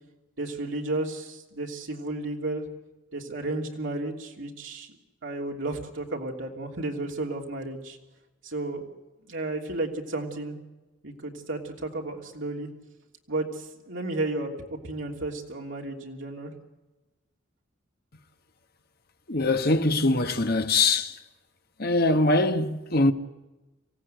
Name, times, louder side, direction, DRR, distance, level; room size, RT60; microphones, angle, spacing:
voice 1, 0.4-2.6 3.1-4.9 5.2-8.0 8.4-8.9 9.2-10.6 11.0-12.7 13.3-14.5 14.8-16.5, right 2 dB, 75° right, 3.1 m, -33 dB
voice 2, 19.3-21.2 21.8-23.1, left 2 dB, 50° left, 1.3 m, -22 dB
26.5 x 16.0 x 9.2 m
head